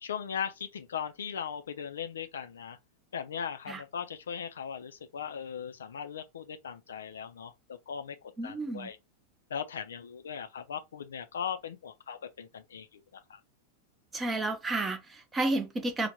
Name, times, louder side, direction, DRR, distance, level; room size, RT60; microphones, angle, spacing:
voice 1, 0.0-2.8 3.1-8.2 8.4-9.0 9.5-13.4, left 7 dB, 65° left, 0.4 m, -38 dB
voice 2, 8.4-8.9 14.1-16.1, right 2 dB, 15° right, 0.7 m, -31 dB
3.2 x 2.1 x 2.8 m
figure-of-eight pair, 90°, 0 cm